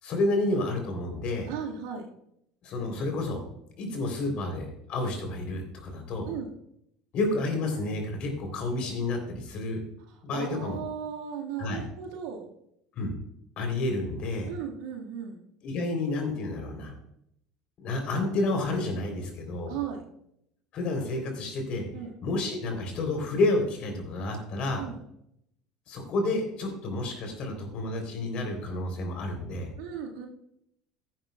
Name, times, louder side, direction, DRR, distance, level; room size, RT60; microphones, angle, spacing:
voice 1, 0.0-1.5 2.6-3.4 3.8-6.3 7.1-9.8 10.2-10.8 11.6-11.8 12.9-13.2 13.6-14.5 15.6-16.9 17.8-19.7 20.7-21.8 22.2-24.8 25.9-29.7, left 2 dB, 50° left, 4 dB, 3.4 m, -30 dB
voice 2, 1.5-2.1 6.3-6.5 10.3-12.5 14.5-15.4 19.7-20.0 21.9-22.1 24.7-25.0 29.8-30.3, right 8 dB, 70° right, 1 dB, 1.8 m, -36 dB
14.5 x 11.0 x 2.3 m, 0.76 s
hypercardioid pair, 70°, 2 cm